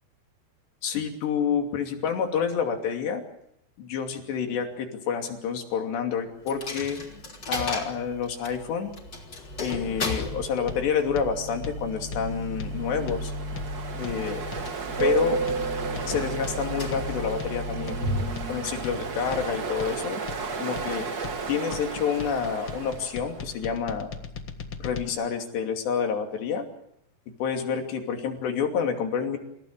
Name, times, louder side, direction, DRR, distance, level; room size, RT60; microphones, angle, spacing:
voice 1, 0.8-3.2 3.8-7.0 7.5-8.9 9.6-13.3 14.0-14.4 15.0-15.4 16.1-18.0 18.5-20.2 20.6-21.1 21.5-24.1 24.8-26.7 27.4-29.4, left 6 dB, 90° left, 4 dB, 5.0 m, -28 dB
Coin (dropping), 6.5-20.2, left 1 dB, 25° left, 3.7 m, -35 dB
sound 1, 9.7-25.1, left 5 dB, 60° left, 1.4 m, -40 dB
Ocean, 12.4-23.5, right 4 dB, 75° right, 0.8 m, -33 dB
28.0 x 16.5 x 8.8 m, 0.75 s
omnidirectional pair, 4.8 m